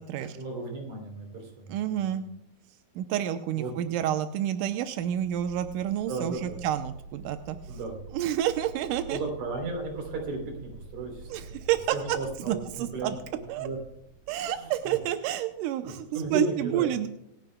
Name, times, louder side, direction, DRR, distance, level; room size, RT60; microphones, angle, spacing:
voice 1, 0.2-1.8 3.6-3.7 6.1-6.6 7.7-8.0 9.1-11.6 11.9-13.1 13.6-13.8 14.6-15.0 15.8-16.9, right 3 dB, 45° right, 2 dB, 4.6 m, -34 dB
voice 2, 1.7-2.2 3.0-7.6 8.1-9.2 11.3-12.2 12.5-13.2 13.5-13.7 14.3-17.1, right 11 dB, 75° right, 8 dB, 2.0 m, -29 dB
sound 1, 5.0-15.6, right 3 dB, 15° right, 4.4 m, -47 dB
27.0 x 10.5 x 2.3 m, 0.80 s
omnidirectional pair, 4.5 m